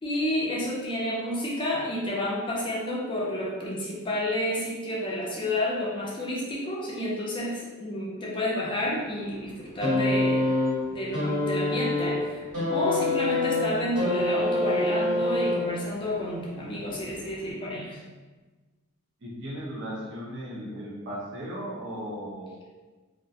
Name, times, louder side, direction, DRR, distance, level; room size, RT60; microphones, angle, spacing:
voice 1, 0.0-10.5 10.9-18.0, left 1 dB, 20° left, -4 dB, 0.4 m, -30 dB
sound 1, 9.8-16.0 17.0-17.1, left 2 dB, 85° right, 1.5 m, -26 dB
voice 2, 19.2-22.6, equal, 55° right, -4 dB, 0.6 m, -36 dB
2.4 x 2.1 x 2.6 m, 1.3 s
head